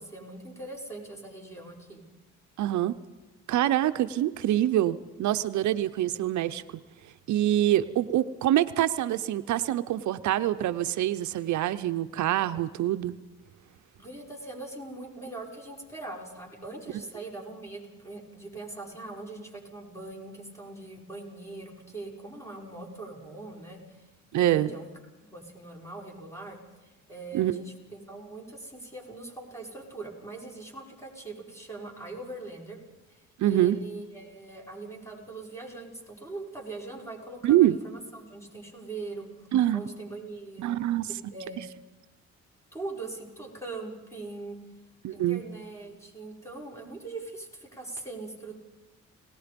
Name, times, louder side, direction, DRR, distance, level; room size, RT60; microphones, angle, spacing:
voice 1, 0.0-2.0 14.0-24.1 24.3-24.9 25.2-32.8 33.1-39.5 39.7-40.8 41.3-41.6 42.7-44.6 45.1-48.6, right 2 dB, 10° left, -1 dB, 5.8 m, -41 dB
voice 2, 2.6-3.0 3.5-6.6 7.3-13.2 24.3-24.7 27.3-27.6 33.4-33.8 37.4-37.8 39.5-39.9 40.6-41.1 45.0-45.4, right 13 dB, 70° right, 12 dB, 0.7 m, -25 dB
30.0 x 18.5 x 5.2 m, 1.2 s
cardioid pair, 90°, 30 cm